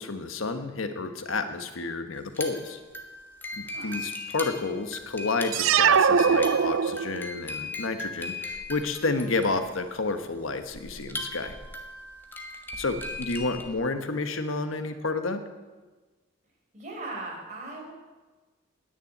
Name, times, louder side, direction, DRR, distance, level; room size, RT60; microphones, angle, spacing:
voice 1, 0.0-2.8 3.6-11.5 12.8-15.4, left 3 dB, 85° left, 8 dB, 1.2 m, -30 dB
sound 1, 2.2-13.7, left 2 dB, 10° left, 1.4 m, -38 dB
voice 2, 3.6-4.0 12.9-13.6 16.7-17.9, right 2 dB, 35° right, -2 dB, 4.7 m, -40 dB
sound 2, 5.5-7.4, right 7 dB, 75° right, 0.4 m, -21 dB
10.5 x 10.0 x 9.5 m, 1.3 s
head